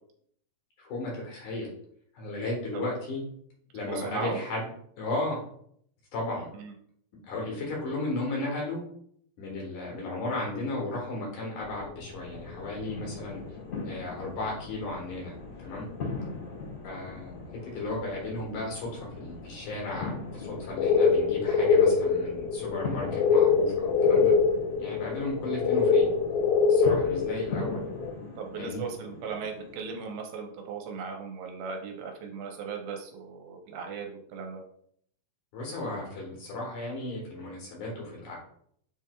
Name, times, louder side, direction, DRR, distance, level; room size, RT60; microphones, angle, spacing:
voice 1, 0.8-1.7 2.2-3.2 3.7-4.7 5.0-5.4 6.1-6.5 7.3-8.8 9.4-13.4 13.8-15.3 15.6-15.9 16.8-17.3 17.7-24.4 24.8-26.1 26.7-27.8 28.5-28.8 35.5-38.4, left 2 dB, 65° left, -2 dB, 2.1 m, -34 dB
voice 2, 3.9-4.4 6.5-6.7 28.4-34.6, right 5 dB, 75° right, 2 dB, 2.6 m, -37 dB
sound 1, 11.8-13.2 14.2-14.3 15.1-15.2 15.8-15.9 16.1-16.2 17.4-17.7 18.3-18.5 19.0-19.3 19.9-20.1 20.4-28.1, left 5 dB, 80° left, 2.4 m, -24 dB
sound 2, 12.2-30.0, left 3 dB, 50° left, 1.2 m, -41 dB
7.0 x 3.4 x 2.2 m, 0.66 s
omnidirectional pair, 4.9 m